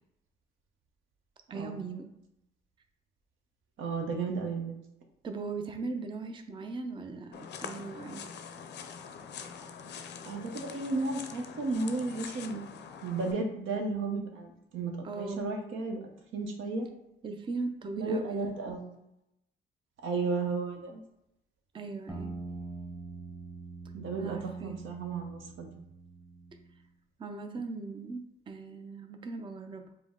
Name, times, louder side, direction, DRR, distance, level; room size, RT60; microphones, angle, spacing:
voice 1, 1.5-2.1 5.2-8.3 15.0-15.5 17.2-18.5 21.7-22.3 24.2-24.8 27.2-29.9, right 3 dB, 25° right, 6 dB, 0.4 m, -39 dB
voice 2, 3.8-4.8 10.2-12.6 13.0-16.0 16.3-16.9 18.0-19.0 20.0-21.0 23.9-25.7, right 3 dB, 80° right, 3 dB, 0.8 m, -33 dB
sound 1, 7.3-13.3, left 7 dB, 60° left, 0.5 m, -44 dB
sound 2, 22.1-26.8, right 3 dB, 10° right, 1.1 m, -44 dB
5.0 x 2.1 x 3.6 m, 0.85 s
cardioid pair, 90°, 20 cm